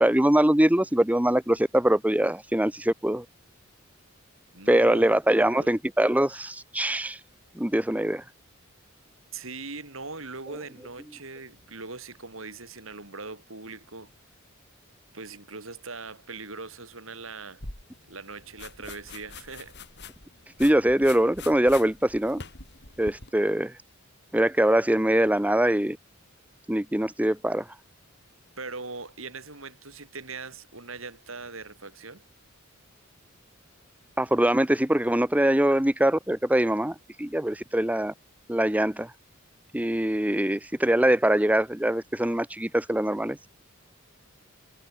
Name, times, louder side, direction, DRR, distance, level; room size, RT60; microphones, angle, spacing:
voice 1, 0.0-3.2 4.7-7.2 7.6-8.2 20.6-22.4 23.0-23.7 24.3-26.0 26.7-27.7 34.2-38.1 38.5-39.1 39.7-43.4, right 1 dB, 5° right, 1.0 m, -23 dB
voice 2, 4.5-5.7 9.3-14.1 15.1-17.6 18.1-19.8 28.6-32.2, right 3 dB, 70° right, 5.4 m, -40 dB
sound 1, 17.6-23.3, left 4 dB, 55° left, 5.3 m, -44 dB
head